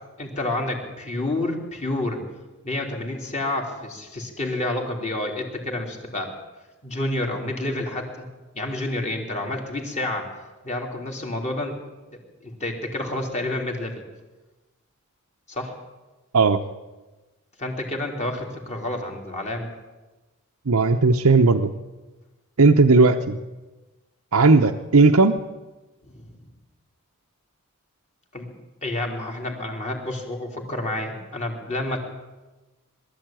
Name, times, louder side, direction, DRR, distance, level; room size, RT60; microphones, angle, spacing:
voice 1, 0.2-2.2 2.6-6.3 6.8-8.3 8.5-10.3 10.6-11.8 12.1-14.0 15.5-15.7 17.6-19.7 23.0-23.1 26.0-26.4 28.3-28.5 28.8-32.0, left 1 dB, 30° left, 1 dB, 3.5 m, -29 dB
voice 2, 20.7-21.7 22.6-23.4 24.3-25.4, right 3 dB, 85° right, 3 dB, 0.9 m, -16 dB
22.0 x 13.5 x 9.1 m, 1.2 s
head